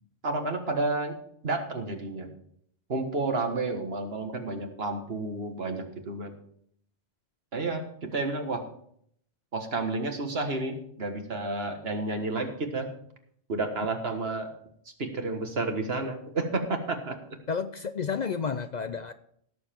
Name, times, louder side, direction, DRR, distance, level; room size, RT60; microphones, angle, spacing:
voice 1, 0.2-1.2 1.4-2.3 2.9-6.3 7.5-8.6 9.5-12.9 13.5-14.5 14.8-17.2, right 3 dB, 65° right, 5 dB, 1.8 m, -31 dB
voice 2, 17.5-19.1, left 6 dB, 50° left, 10 dB, 0.6 m, -31 dB
17.0 x 7.3 x 4.5 m, 0.66 s
omnidirectional pair, 1.1 m